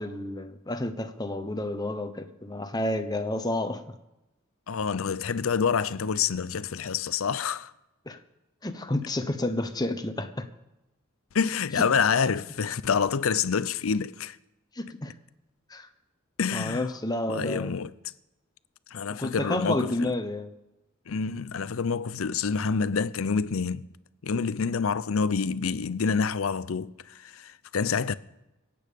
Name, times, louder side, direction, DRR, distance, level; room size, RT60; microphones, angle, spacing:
voice 1, 0.0-3.8 8.1-8.2 8.6-10.5 14.7-15.1 15.7-15.9 16.5-17.7 19.2-20.5, left 1 dB, 20° left, 1.0 m, -30 dB
voice 2, 4.7-7.7 11.3-14.4 16.4-16.9 17.3-17.9 18.9-20.1 21.1-23.9 24.2-28.1, left 6 dB, 90° left, 0.6 m, -27 dB
25.0 x 8.7 x 5.2 m
head